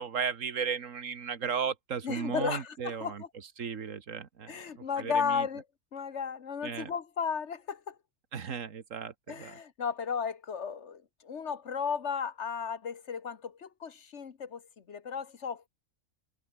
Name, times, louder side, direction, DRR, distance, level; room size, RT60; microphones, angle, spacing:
voice 1, 0.0-3.2 3.6-5.5 6.6-6.9 8.3-9.6, right 6 dB, 80° right, 1.8 m, -35 dB
voice 2, 2.0-3.3 4.5-5.6 5.9-8.0 9.3-15.7, left 6 dB, 65° left, 1.5 m, -34 dB
omnidirectional pair, 1.3 m